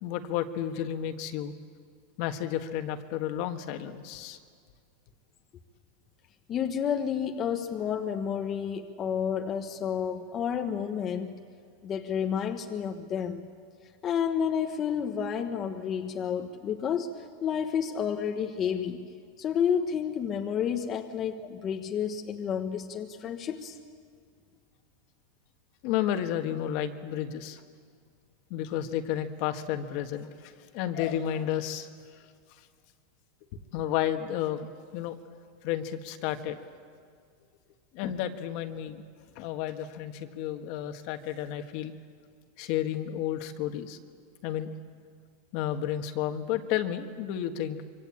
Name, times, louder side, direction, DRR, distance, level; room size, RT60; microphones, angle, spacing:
voice 1, 0.0-1.5 2.2-4.4 25.8-27.6 28.5-31.9 32.2-32.3 33.5-35.2 35.6-36.6 37.9-39.0 39.4-41.9 42.6-44.0 44.4-44.7 45.5-47.8, left 10 dB, 50° left, 7 dB, 1.7 m, -32 dB
voice 2, 6.5-11.3 11.8-13.5 14.0-17.1 17.4-19.1 19.4-23.8, left 8 dB, 25° left, 4 dB, 1.2 m, -30 dB
25.5 x 24.5 x 8.7 m, 2.1 s
supercardioid pair, 155°, 0 cm